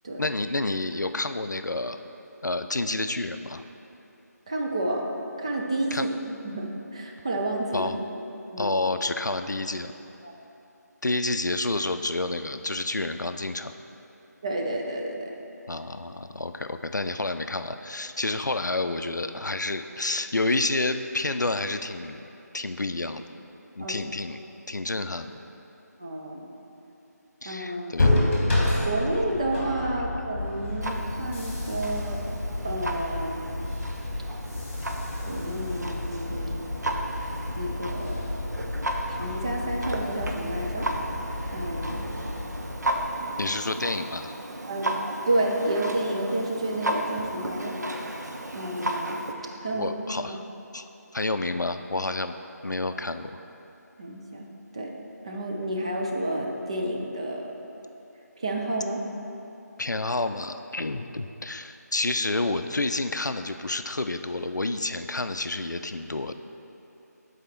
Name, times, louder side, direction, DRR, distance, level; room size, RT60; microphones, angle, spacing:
voice 1, 0.2-2.0 2.4-3.6 5.9-6.1 7.7-8.0 8.6-9.9 11.0-13.7 15.7-22.3 22.5-23.2 23.8-24.4 24.7-25.3 27.4-28.1 30.0-30.1 43.4-44.3 49.7-50.4 50.7-50.9 51.1-52.4 52.6-53.3 59.8-66.3, left 2 dB, 85° left, 9 dB, 0.4 m, -29 dB
voice 2, 4.5-5.1 5.4-7.9 8.5-8.7 10.2-10.3 14.4-15.3 23.8-23.9 26.0-26.5 27.4-27.9 28.8-32.2 32.6-33.4 35.2-36.6 37.5-38.2 39.1-40.9 41.5-42.0 44.7-44.9 45.3-47.7 48.5-49.2 49.6-49.9 50.3-50.4 54.0-54.4 54.7-54.9 55.2-57.5 58.4-59.0, right 1 dB, 20° right, -1 dB, 0.4 m, -30 dB
sound 1, 28.0-43.7, left 2 dB, 35° left, 1.5 m, -30 dB
Clock, 30.8-49.3, right 1 dB, 70° right, 0.7 m, -34 dB
8.0 x 4.1 x 4.3 m, 2.9 s
figure-of-eight pair, 160°, 9 cm